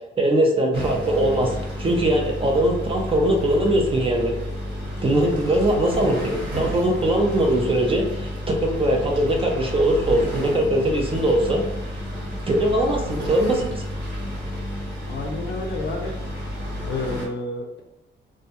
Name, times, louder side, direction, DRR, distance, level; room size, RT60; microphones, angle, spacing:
voice 1, 0.2-1.5 1.8-4.3 5.0-11.6 12.5-13.8, right 1 dB, 25° right, 1 dB, 0.5 m, -21 dB
sound 1, 0.7-17.3, equal, 60° right, 1.1 m, -31 dB
voice 2, 15.1-16.1 16.9-17.8, left 2 dB, 65° left, 2 dB, 0.5 m, -30 dB
2.2 x 2.2 x 2.8 m, 0.88 s
cardioid pair, 90°, 20 cm